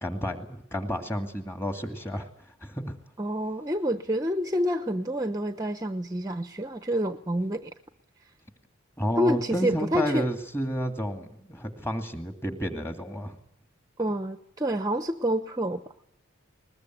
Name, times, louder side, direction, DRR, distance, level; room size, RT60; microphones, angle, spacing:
voice 1, 0.0-2.3 2.6-3.0 9.0-13.4, equal, 10° left, 6 dB, 2.4 m, -31 dB
voice 2, 3.2-7.7 9.2-10.3 14.0-15.8, equal, 15° right, 9 dB, 0.9 m, -28 dB
21.5 x 21.0 x 9.3 m, 0.72 s
head